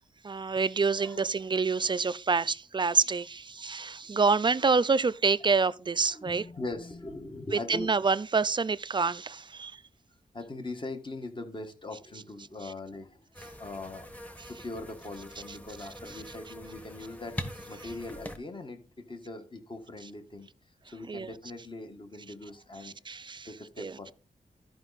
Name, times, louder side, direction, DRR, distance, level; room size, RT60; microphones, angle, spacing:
voice 1, 0.2-6.4 7.5-9.8 21.1-21.3 22.8-23.5 23.8-23.9, right 4 dB, 30° right, 0.4 m, -27 dB
voice 2, 6.0-7.9 10.3-14.1 14.5-20.5 20.9-24.1, left 2 dB, 30° left, 1.5 m, -41 dB
sound 1, 13.3-18.4, equal, 10° left, 1.3 m, -43 dB
13.0 x 5.3 x 4.1 m
wide cardioid pair, 90°, 15 cm